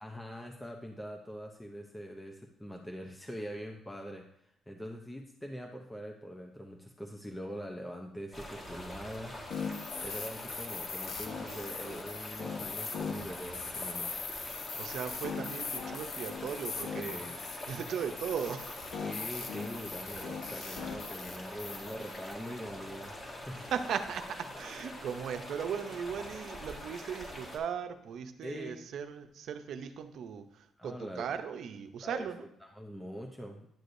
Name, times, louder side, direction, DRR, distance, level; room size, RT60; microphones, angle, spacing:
voice 1, 0.0-14.1 17.0-17.4 19.0-23.7 28.4-28.8 30.8-31.3 32.0-32.3 32.6-33.7, equal, 10° left, 2 dB, 0.7 m, -43 dB
sound 1, 8.3-27.6, left 1 dB, 30° left, 1.7 m, -45 dB
sound 2, 9.5-22.6, left 5 dB, 70° left, 0.9 m, -40 dB
voice 2, 14.8-18.8 23.5-32.4, right 7 dB, 70° right, 8 dB, 0.7 m, -38 dB
10.5 x 6.4 x 2.6 m, 0.75 s
cardioid pair, 90°, 0 cm